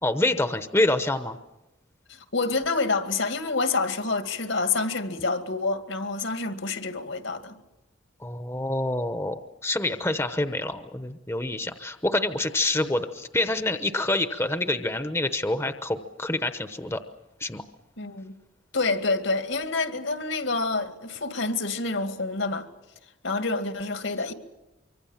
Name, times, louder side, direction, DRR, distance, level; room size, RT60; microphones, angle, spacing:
voice 1, 0.0-1.4 8.2-17.0 17.4-17.6, left 2 dB, 15° left, 0.9 m, -27 dB
voice 2, 2.1-7.5 18.0-18.3 18.7-22.7 23.2-24.3, left 3 dB, 75° left, 2.3 m, -27 dB
24.5 x 24.5 x 7.3 m
head